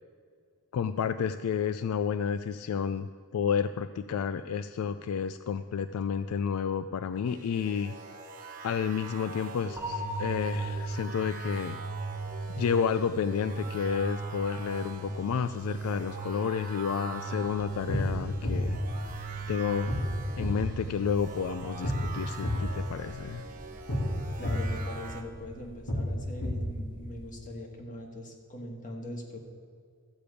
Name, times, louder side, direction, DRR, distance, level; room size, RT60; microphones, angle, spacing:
voice 1, 0.7-8.0 8.6-11.8 12.6-18.8 19.5-20.0 20.3-23.4, left 7 dB, 70° left, 11 dB, 0.3 m, -31 dB
sound 1, 7.3-25.2, right 4 dB, 40° right, 1.0 m, -44 dB
sound 2, 9.8-21.7, right 3 dB, 10° right, 1.2 m, -38 dB
sound 3, 17.6-27.3, left 1 dB, 90° left, 2.5 m, -33 dB
voice 2, 24.4-29.4, left 1 dB, 35° left, 1 dB, 1.6 m, -41 dB
13.5 x 5.1 x 8.3 m, 2.2 s
head